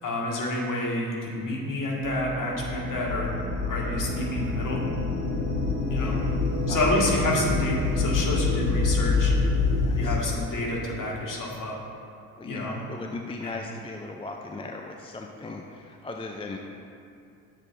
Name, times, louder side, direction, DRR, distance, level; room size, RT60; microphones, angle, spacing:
voice 1, 0.0-3.3 3.7-4.8 5.9-6.2 6.7-9.3 10.0-11.8 12.4-12.8 13.4-13.6, left 1 dB, 45° left, -3 dB, 2.0 m, -29 dB
sound 1, 2.0-10.2, left 4 dB, 85° left, 0.7 m, -26 dB
sound 2, 2.3-11.6, right 5 dB, 20° right, 1.0 m, -39 dB
voice 2, 5.9-6.4 6.7-7.0 9.9-10.2 12.4-16.6, left 3 dB, 15° left, 2 dB, 0.5 m, -38 dB
10.5 x 7.5 x 2.7 m, 2.5 s
hypercardioid pair, 50°, 45 cm